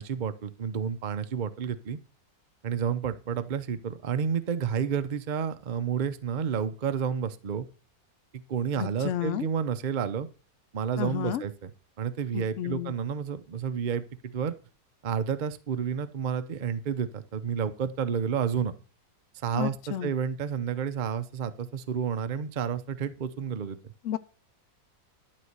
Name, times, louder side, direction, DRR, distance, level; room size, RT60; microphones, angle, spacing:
voice 1, 0.0-2.0 2.6-7.7 8.3-10.3 10.7-11.7 12.0-14.5 15.0-18.7 19.4-23.8, right 7 dB, 55° right, 10 dB, 0.5 m, -30 dB
voice 2, 8.8-9.5 11.0-11.4 12.3-12.9 19.5-20.1 24.0-24.2, left 11 dB, 75° left, 12 dB, 0.7 m, -31 dB
12.0 x 4.3 x 8.0 m, 0.37 s
omnidirectional pair, 1.9 m